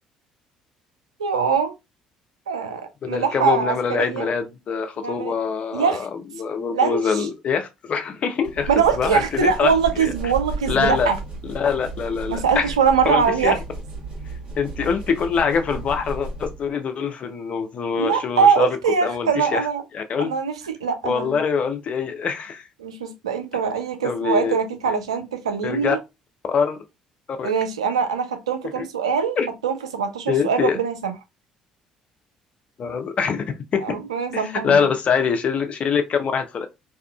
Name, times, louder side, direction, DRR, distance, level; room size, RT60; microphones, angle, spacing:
voice 1, 1.2-1.7 2.5-4.3 5.0-5.3 5.7-6.1 6.7-7.3 8.7-11.2 12.3-13.6 18.0-19.8 20.2-21.4 22.8-26.0 27.4-29.4 29.6-31.1 33.8-34.8, right 6 dB, 85° right, 0.4 m, -22 dB
voice 2, 3.0-8.7 9.0-9.7 10.0-10.1 10.7-11.1 11.4-12.7 13.0-13.6 14.6-19.7 19.9-20.3 21.0-22.7 24.0-24.5 25.6-26.0 26.5-26.8 27.3-27.5 28.8-28.9 29.4-29.5 30.3-30.8 32.8-34.0 34.3-36.7, left 6 dB, 45° left, 0.5 m, -24 dB
sound 1, 8.4-16.7, right 3 dB, 40° right, 1.4 m, -34 dB
2.7 x 2.3 x 2.3 m
hypercardioid pair, 55°, 3 cm